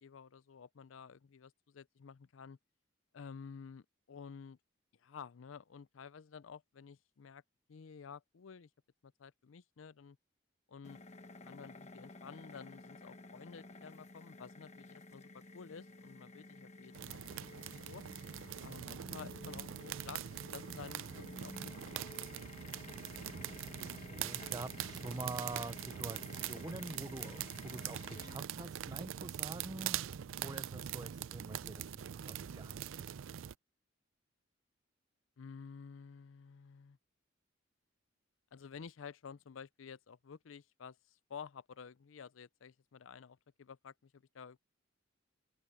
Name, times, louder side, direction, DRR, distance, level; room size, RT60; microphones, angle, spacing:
voice 1, 0.0-2.6 3.1-4.6 5.0-7.4 7.7-8.7 9.0-10.2 10.7-11.0 11.4-18.0 18.6-20.2 20.5-21.7 22.2-22.3 35.4-37.0 38.5-44.6, left 6 dB, 80° left, 0.5 m, -52 dB
Frequency Sweep Relay Buzz, 10.8-28.4, left 2 dB, 35° left, 1.1 m, -53 dB
sound 1, 16.9-33.5, right 10 dB, 90° right, 0.4 m, -43 dB
voice 2, 23.4-30.0 30.4-33.1, right 2 dB, 20° right, 0.5 m, -46 dB
head